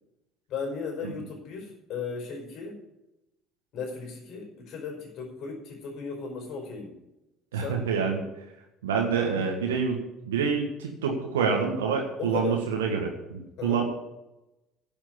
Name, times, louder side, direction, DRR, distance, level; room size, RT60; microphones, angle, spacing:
voice 1, 0.5-2.8 3.7-6.9 7.5-7.9 12.2-12.6 13.6-13.8, left 5 dB, 55° left, 1 dB, 5.1 m, -36 dB
voice 2, 7.5-8.2 8.8-10.0 10.3-13.8, right 6 dB, 75° right, 1 dB, 1.6 m, -27 dB
11.0 x 7.2 x 8.6 m, 0.92 s
figure-of-eight pair, 60°, 0 cm